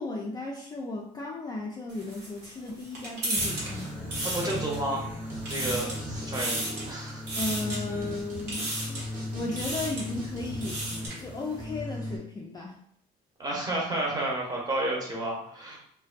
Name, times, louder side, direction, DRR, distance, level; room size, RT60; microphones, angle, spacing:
voice 1, 0.0-4.1 7.4-9.0 9.3-10.8 11.2-12.8, left 2 dB, 25° left, -1 dB, 0.3 m, -35 dB
sound 1, 1.9-5.0 5.3-6.0 6.3-6.9 7.3-7.8 8.5-9.1 9.5-10.1 10.5-11.2, right 1 dB, 80° right, 1.1 m, -34 dB
sound 2, 3.3-12.2, left 1 dB, 5° left, 0.9 m, -38 dB
voice 2, 4.2-5.0 5.5-7.2 13.4-15.8, right 1 dB, 20° right, -3 dB, 0.9 m, -31 dB
sound 3, 5.3-5.4 5.7-11.1, right 2 dB, 55° right, 0.9 m, -42 dB
2.5 x 2.2 x 2.4 m, 0.67 s
cardioid pair, 110°, 17 cm